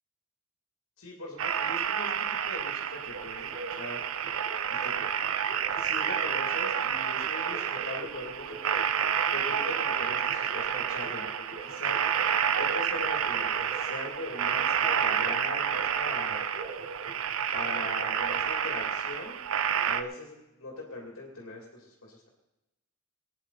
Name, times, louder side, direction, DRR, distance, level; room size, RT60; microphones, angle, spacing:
voice 1, 1.0-4.0 4.7-4.9 5.8-8.8 9.3-12.0 12.5-16.4 17.5-19.3 19.8-20.3 20.5-22.3, left 1 dB, 65° left, -3 dB, 2.7 m, -40 dB
sound 1, 1.4-20.0, right 8 dB, 60° right, 0.5 m, -29 dB
sound 2, 3.1-18.4, right 2 dB, 40° right, 1.4 m, -45 dB
20.5 x 9.9 x 4.2 m, 0.95 s
head